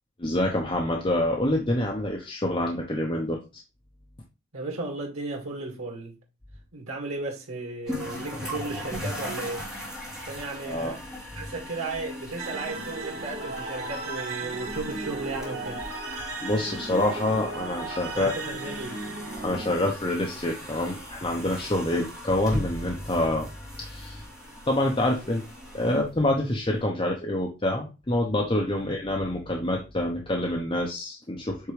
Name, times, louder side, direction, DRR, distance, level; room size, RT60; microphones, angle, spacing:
voice 1, 0.2-3.6 10.7-11.0 16.4-18.3 19.4-23.5 23.8-24.2 24.7-25.4 25.7-31.7, left 1 dB, 25° left, 0.8 m, -26 dB
voice 2, 4.5-6.2 6.7-9.6 10.2-11.0 11.3-15.8 18.1-19.0 21.9-22.0, right 3 dB, 85° right, 2.1 m, -35 dB
Sonic Snap Sint-Laurens, 7.9-26.7, left 1 dB, 5° right, 2.3 m, -39 dB
sound 1, 12.4-19.8, right 2 dB, 55° right, 2.2 m, -36 dB
8.2 x 3.6 x 3.2 m
head